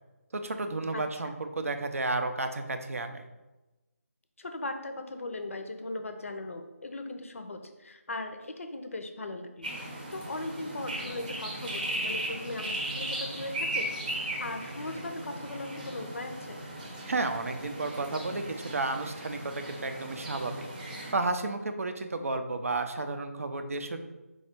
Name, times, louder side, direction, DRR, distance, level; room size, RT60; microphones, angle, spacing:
voice 1, 0.3-3.2 17.1-24.0, right 3 dB, 65° right, 7 dB, 0.5 m, -32 dB
voice 2, 0.9-1.4 4.4-9.7 10.1-13.9 14.4-16.7, left 2 dB, 60° left, 7 dB, 0.5 m, -38 dB
sound 1, 9.6-21.1, right 1 dB, 30° right, 0.8 m, -37 dB
4.3 x 2.3 x 4.4 m, 1.1 s
figure-of-eight pair, 160°, 8 cm